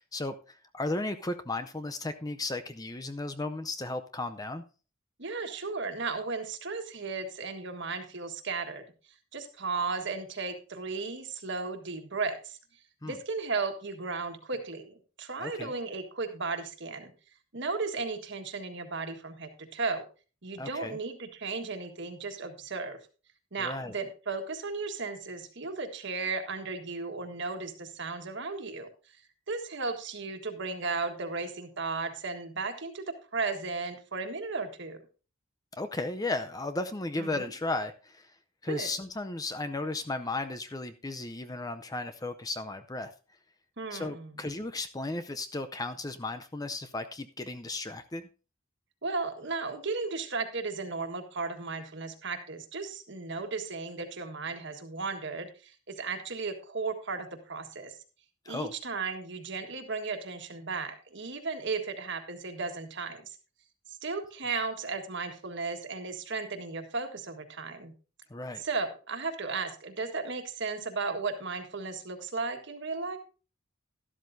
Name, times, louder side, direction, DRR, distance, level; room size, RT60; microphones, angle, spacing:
voice 1, 0.0-4.6 13.0-13.2 15.4-15.7 20.6-21.0 23.6-24.0 35.7-38.3 38.6-43.1 43.9-48.3 58.5-58.7 68.3-68.6, left 2 dB, 20° left, 9 dB, 0.5 m, -35 dB
voice 2, 5.2-8.8 9.3-12.6 13.0-17.1 17.5-20.0 20.4-23.0 23.5-29.2 29.5-33.0 33.3-35.0 37.2-37.5 38.7-38.9 43.8-44.4 49.0-58.0 58.5-63.4 63.9-67.9 68.6-73.2, right 4 dB, 60° right, 6 dB, 1.6 m, -35 dB
12.5 x 12.0 x 2.7 m, 0.34 s
head